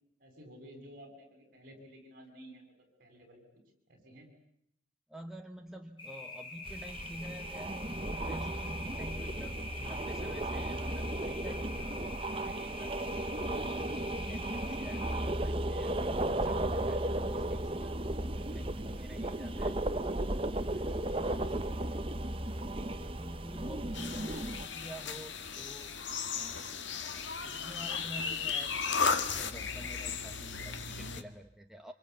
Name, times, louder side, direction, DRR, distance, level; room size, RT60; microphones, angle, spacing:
voice 1, 0.2-3.4 3.9-4.3 19.4-19.6, equal, 45° right, 4 dB, 7.5 m, -53 dB
voice 2, 5.1-13.3 13.7-19.8 20.5-22.1 23.1-26.0 26.3-26.7 27.4-28.8 29.3-31.9, equal, ahead, 3 dB, 1.1 m, -49 dB
sound 1, 6.0-15.2, left 3 dB, 25° left, 6.8 m, -45 dB
sound 2, 6.7-24.7, right 1 dB, 30° right, 1.0 m, -35 dB
sound 3, 23.9-31.2, left 5 dB, 70° left, 1.7 m, -35 dB
26.5 x 26.0 x 8.5 m, 0.76 s
head